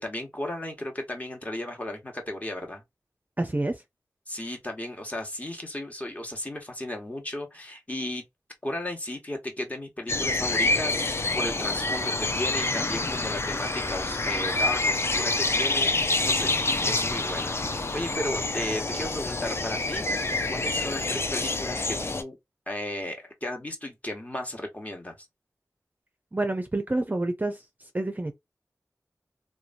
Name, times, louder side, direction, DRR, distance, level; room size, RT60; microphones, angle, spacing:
voice 1, 0.0-2.8 4.3-8.2 8.6-16.5 16.8-20.1 20.5-22.4 22.7-25.2, left 1 dB, 25° left, 1.0 m, -35 dB
voice 2, 3.4-3.8 26.3-27.6 27.9-28.3, right 2 dB, 25° right, 0.5 m, -28 dB
sound 1, 10.1-22.2, left 2 dB, 45° left, 0.4 m, -27 dB
2.9 x 2.2 x 2.5 m
wide cardioid pair, 45°, 6 cm